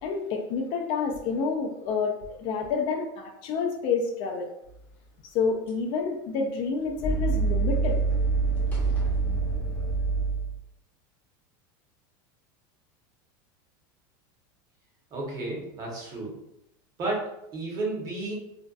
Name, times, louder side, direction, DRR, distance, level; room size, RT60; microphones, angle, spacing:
voice 1, 0.0-4.5 5.3-8.0, left 5 dB, 45° left, 2 dB, 0.3 m, -29 dB
sound 1, 5.7-5.8 6.8-10.5, right 4 dB, 15° left, 0.7 m, -26 dB
voice 2, 15.1-16.4 17.0-18.3, right 2 dB, 30° right, -2 dB, 0.8 m, -32 dB
2.5 x 2.1 x 2.3 m, 0.84 s
supercardioid pair, 150°, 12 cm